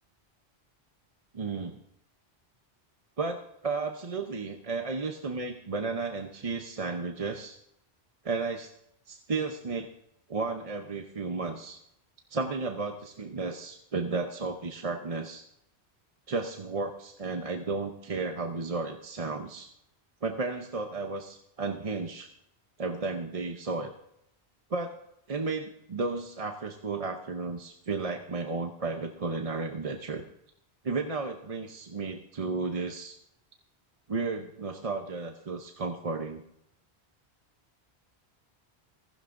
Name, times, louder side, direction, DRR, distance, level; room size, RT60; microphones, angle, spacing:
voice 1, 1.3-1.8 3.2-7.6 8.2-8.7 9.1-9.9 10.3-11.8 12.3-15.5 16.3-19.7 20.2-22.3 22.8-23.9 24.7-25.0 25.3-30.2 30.8-33.2 34.1-36.4, right 4 dB, 35° right, 5 dB, 0.8 m, -33 dB
16.0 x 15.0 x 2.6 m, 0.77 s
omnidirectional pair, 1.1 m